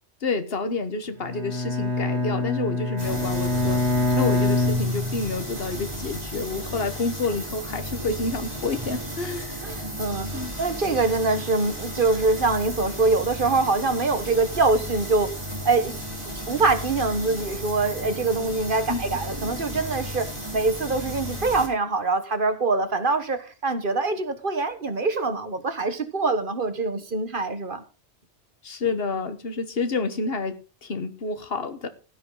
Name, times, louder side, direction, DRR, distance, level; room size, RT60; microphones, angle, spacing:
voice 1, 0.2-3.8 4.1-9.5 10.3-10.5 18.9-19.2 28.6-31.9, left 3 dB, 55° left, 1.6 m, -29 dB
Bowed string instrument, 1.2-5.6, left 2 dB, 70° right, 2.5 m, -25 dB
sound 1, 3.0-21.7, equal, 25° right, 5.7 m, -34 dB
voice 2, 9.6-15.3 15.6-16.0 16.5-27.8, right 3 dB, 50° right, 1.5 m, -24 dB
16.0 x 10.0 x 3.9 m
omnidirectional pair, 1.2 m